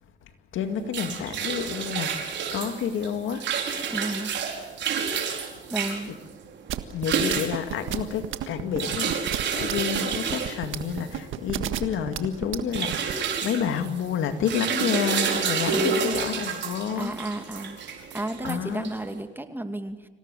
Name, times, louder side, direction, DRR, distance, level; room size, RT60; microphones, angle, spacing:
voice 1, 0.5-3.4 6.9-17.1 18.4-18.9, left 8 dB, 80° left, 8 dB, 2.2 m, -29 dB
sound 1, 0.6-19.2, right 6 dB, 65° right, 4.8 m, -30 dB
voice 2, 3.9-4.4 5.7-6.2 15.7-16.1 17.0-20.1, right 1 dB, 10° right, 7 dB, 2.4 m, -33 dB
sound 2, 6.7-13.1, right 12 dB, 85° right, 1.6 m, -31 dB
26.5 x 17.5 x 9.2 m, 1.2 s
cardioid pair, 90°, 20 cm